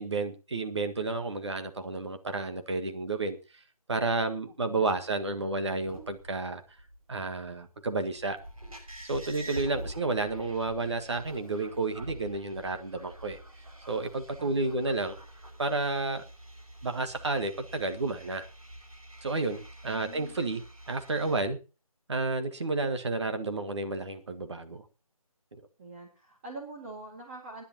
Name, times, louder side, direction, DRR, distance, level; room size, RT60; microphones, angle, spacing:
voice 1, 0.0-3.4 3.9-6.6 7.1-8.4 9.1-13.4 13.9-15.2 15.6-16.2 16.8-18.4 19.2-20.6 20.9-21.6 22.1-24.8, right 3 dB, 50° right, 7 dB, 1.7 m, -31 dB
voice 2, 4.6-5.0 14.4-14.8 19.9-20.4 25.8-27.6, right 3 dB, 20° right, -1 dB, 2.2 m, -45 dB
sound 1, 5.9-21.4, right 1 dB, 70° right, 5.9 m, -46 dB
25.5 x 10.0 x 2.9 m, 0.32 s
figure-of-eight pair, 155°, 19 cm